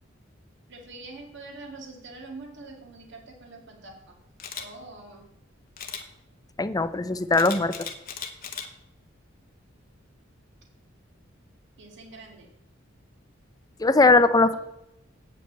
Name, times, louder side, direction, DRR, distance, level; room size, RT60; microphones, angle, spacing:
voice 1, 0.7-4.2 4.6-5.3 11.8-12.5 14.4-14.6, right 3 dB, 65° right, 2 dB, 2.0 m, -44 dB
Camera, 4.4-4.7 5.8-6.0 7.3-8.7 9.2-9.4, left 7 dB, 45° left, 1.1 m, -36 dB
voice 2, 6.6-7.9 13.8-14.5, left 3 dB, 20° left, 13 dB, 0.5 m, -20 dB
8.6 x 5.3 x 7.7 m, 0.87 s
head